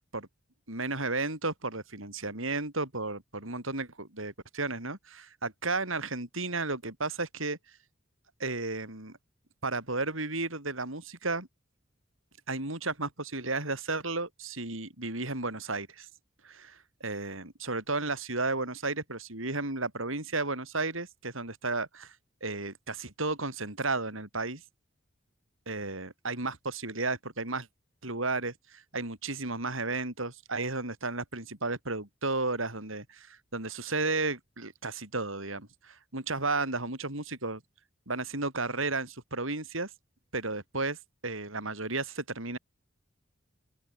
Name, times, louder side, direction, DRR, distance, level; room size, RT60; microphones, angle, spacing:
voice 1, 0.7-7.6 8.4-9.2 9.6-11.5 12.5-16.1 16.4-22.1 22.4-24.6 25.7-27.7 28.0-37.6 38.1-39.9 40.3-41.0 41.2-42.6, right 3 dB, 85° right, 7.2 m, -33 dB
open air
head